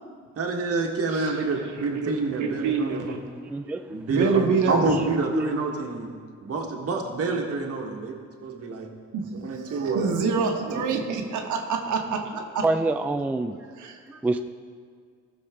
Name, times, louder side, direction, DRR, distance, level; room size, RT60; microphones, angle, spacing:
voice 1, 0.4-3.2 3.9-6.1 6.4-8.9 9.3-10.1 10.7-10.8, right 3 dB, 50° right, 2 dB, 1.5 m, -28 dB
voice 2, 2.4-3.2 4.1-4.9 9.1-9.3 9.7-12.7 13.8-14.0, right 5 dB, 75° right, 3 dB, 1.1 m, -26 dB
voice 3, 3.5-4.0 5.3-5.5 12.6-13.6 14.1-14.5, right 2 dB, 5° right, 7 dB, 0.3 m, -26 dB
14.5 x 6.3 x 3.6 m, 2.1 s
cardioid pair, 90°, 30 cm